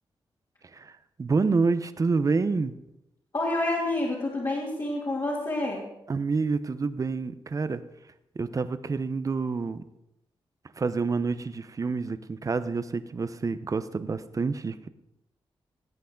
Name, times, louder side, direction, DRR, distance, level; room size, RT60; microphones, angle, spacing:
voice 1, 1.2-2.7 6.1-7.8 8.4-9.8 10.8-14.9, right 4 dB, 35° right, 13 dB, 0.7 m, -28 dB
voice 2, 3.3-5.8, left 2 dB, 40° left, -5 dB, 2.8 m, -28 dB
17.5 x 8.2 x 3.9 m, 0.84 s
cardioid pair, 95°, 10 cm